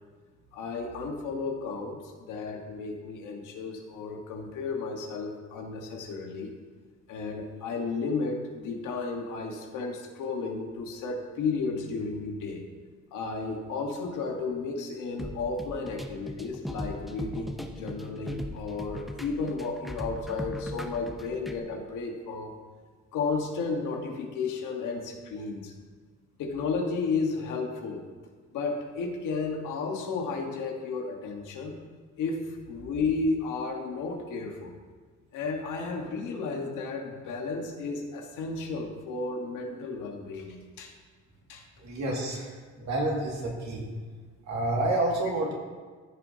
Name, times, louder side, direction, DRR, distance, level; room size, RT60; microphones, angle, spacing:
voice 1, 0.5-6.5 7.1-12.6 13.1-22.5 23.1-25.7 26.4-28.0 28.5-31.8 32.2-34.8 35.3-40.9 41.5-41.6 42.8-42.9, left 4 dB, 85° left, 2 dB, 1.4 m, -33 dB
sound 1, 15.2-21.6, equal, ahead, 0.7 m, -38 dB
voice 2, 41.8-42.5 42.8-43.8 44.5-45.5, right 2 dB, 65° right, -2 dB, 2.2 m, -29 dB
14.5 x 6.2 x 2.8 m, 1.5 s
cardioid pair, 90°, 30 cm